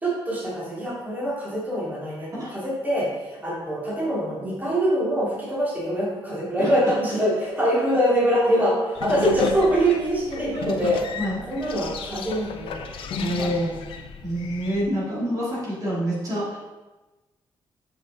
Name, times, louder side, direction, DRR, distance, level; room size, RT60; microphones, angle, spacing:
voice 1, 0.0-3.1 3.4-11.0 11.5-13.5, equal, 20° right, -7 dB, 2.2 m, -24 dB
sound 1, 9.0-14.8, left 6 dB, 80° left, 0.6 m, -34 dB
voice 2, 13.2-13.8 14.2-16.6, equal, 40° right, -7 dB, 2.2 m, -27 dB
7.2 x 5.6 x 3.6 m, 1.1 s
wide cardioid pair, 160°, 9 cm